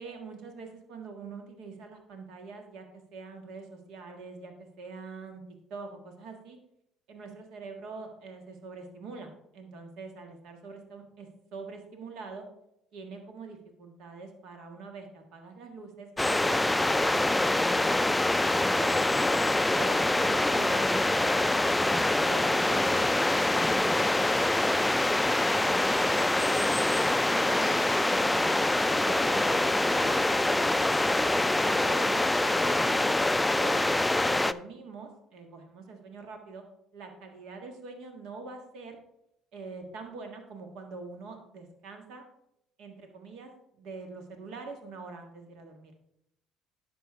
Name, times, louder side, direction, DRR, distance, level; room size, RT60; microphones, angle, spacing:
voice 1, 0.0-5.4 5.7-6.6 7.1-12.4 12.9-18.1 18.5-19.5 19.8-21.5 21.8-24.5 25.6-27.8 28.1-28.7 29.0-33.1 33.6-34.0 34.3-36.6 36.9-39.0 39.5-42.2 42.8-45.9, right 4 dB, 70° right, 4 dB, 1.5 m, -44 dB
sound 1, 16.2-34.5, left 2 dB, 10° left, 0.3 m, -25 dB
10.5 x 6.1 x 3.5 m, 0.80 s
hypercardioid pair, 65°, 0 cm